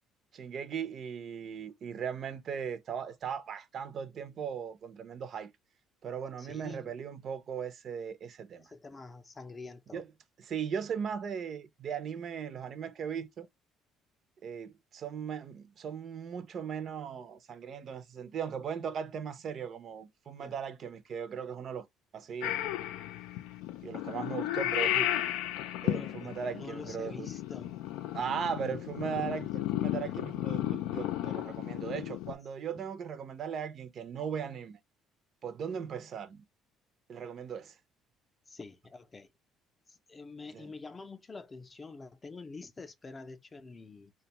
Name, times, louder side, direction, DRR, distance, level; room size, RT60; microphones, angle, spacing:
voice 1, 0.3-5.5 6.0-8.6 9.9-10.0 10.4-13.5 14.4-21.9 22.1-22.6 23.8-25.1 25.8-27.3 28.1-34.8 35.4-36.4 37.1-37.7 40.5-40.7, right 7 dB, 50° right, 0.5 m, -38 dB
voice 2, 6.4-7.0 8.6-10.0 20.4-20.5 25.9-27.7 38.5-39.3 39.9-44.1, left 3 dB, 25° left, 0.5 m, -47 dB
Purr / Meow, 22.4-32.4, left 13 dB, 85° left, 0.4 m, -34 dB
2.5 x 2.2 x 2.8 m
cardioid pair, 100°, 0 cm